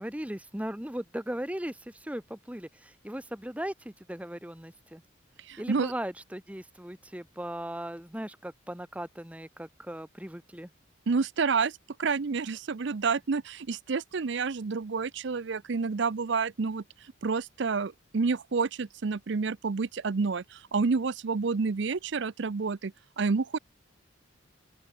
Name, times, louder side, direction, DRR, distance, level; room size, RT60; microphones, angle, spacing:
voice 1, 0.0-5.0 5.6-10.7, right 1 dB, 5° right, 1.0 m, -38 dB
voice 2, 5.4-5.9 11.1-23.6, right 4 dB, 60° right, 0.5 m, -29 dB
open air
head